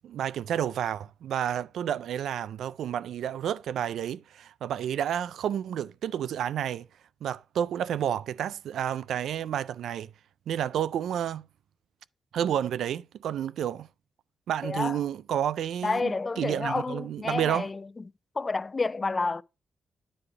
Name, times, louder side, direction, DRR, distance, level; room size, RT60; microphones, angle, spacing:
voice 1, 0.0-6.9 7.2-10.1 10.5-11.5 12.3-13.9 14.5-17.7, right 10 dB, 90° right, 0.3 m, -30 dB
voice 2, 14.6-15.0 15.8-17.8 18.4-19.4, left 3 dB, 25° left, 0.3 m, -29 dB
9.8 x 3.3 x 5.7 m
cardioid pair, 115°, 0 cm